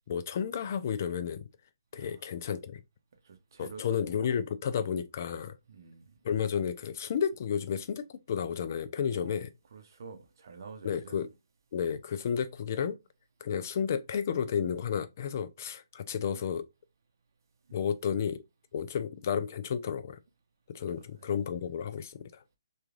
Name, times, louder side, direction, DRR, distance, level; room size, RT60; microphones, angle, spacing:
voice 1, 0.0-1.5 1.9-2.8 3.6-5.6 6.2-9.5 10.8-11.3 11.7-13.0 13.4-16.6 17.7-18.4 18.7-20.2 20.7-22.4, left 7 dB, 35° left, 0.3 m, -32 dB
voice 2, 3.2-3.8 5.7-6.2 9.1-9.3 9.7-11.2 17.7-17.9 21.0-21.1, right 5 dB, 50° right, 0.7 m, -48 dB
3.1 x 2.4 x 2.4 m
hypercardioid pair, 160°, 2 cm